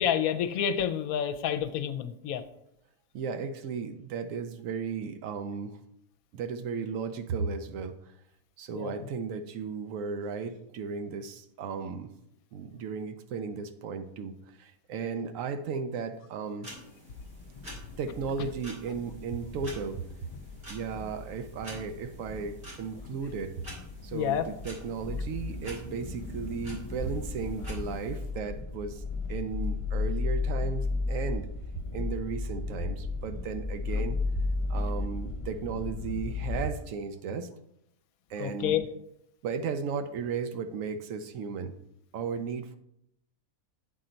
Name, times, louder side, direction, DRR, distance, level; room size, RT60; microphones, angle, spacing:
voice 1, 0.0-2.4 8.7-8.9 24.1-24.5 33.9-34.0 38.4-38.9, left 9 dB, 75° left, 10 dB, 1.0 m, -29 dB
voice 2, 3.1-5.8 6.3-8.1 8.6-12.1 12.5-16.7 18.0-20.0 20.7-23.6 24.0-29.0 29.3-31.5 31.9-34.2 34.7-37.5 38.3-38.8 39.4-41.8 42.1-42.8, right 5 dB, 70° right, 9 dB, 0.9 m, -35 dB
sound 1, 16.6-28.3, equal, 40° right, 2.5 m, -49 dB
sound 2, 17.2-36.7, left 3 dB, 55° left, 0.3 m, -35 dB
8.4 x 3.9 x 4.4 m, 0.77 s
omnidirectional pair, 1.5 m